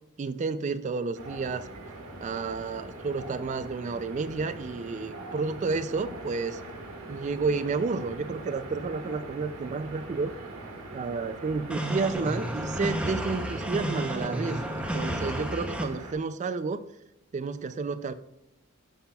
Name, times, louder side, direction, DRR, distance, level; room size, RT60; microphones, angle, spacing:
voice 1, 0.2-1.7 2.2-6.6 7.1-10.3 10.9-16.9 17.3-18.1, right 4 dB, 35° right, 13 dB, 0.3 m, -31 dB
sound 1, 1.1-16.1, right 2 dB, 85° right, 1.6 m, -42 dB
sound 2, 11.7-15.8, right 1 dB, 5° right, 0.6 m, -31 dB
14.0 x 5.8 x 2.3 m, 0.89 s
head